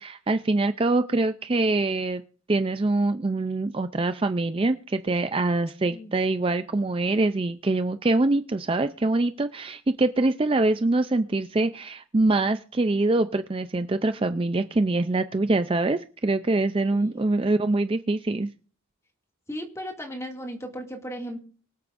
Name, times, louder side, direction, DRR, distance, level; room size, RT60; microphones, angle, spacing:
voice 1, 0.0-2.2 2.5-18.5, right 2 dB, 25° right, 10 dB, 0.4 m, -24 dB
voice 2, 19.5-21.4, equal, 15° left, 1 dB, 2.2 m, -36 dB
24.0 x 8.1 x 2.6 m, 0.41 s
head